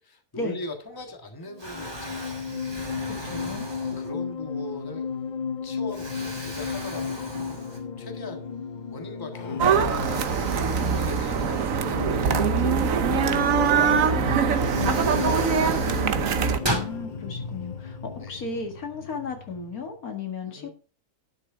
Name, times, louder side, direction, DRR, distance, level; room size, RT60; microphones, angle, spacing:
voice 1, 0.0-2.5 3.8-5.1 5.6-7.2 7.5-7.6 8.0-8.5 8.9-14.0 18.2-18.4 20.5-20.7, left 2 dB, 15° left, 5 dB, 1.5 m, -40 dB
Explosion, 0.9-1.3 1.6-4.4 5.0-5.2 5.9-8.2 8.5-8.6 9.8-12.5 13.9-14.0 14.5-17.0, right 1 dB, 15° right, 2.2 m, -37 dB
sound 1, 1.5-19.9, left 6 dB, 55° left, 0.5 m, -34 dB
voice 2, 3.0-3.7 14.8-20.7, left 4 dB, 70° left, 4 dB, 2.4 m, -36 dB
sound 2, 9.6-16.6, right 6 dB, 65° right, 1.3 m, -23 dB
11.5 x 6.5 x 5.0 m, 0.38 s
omnidirectional pair, 1.6 m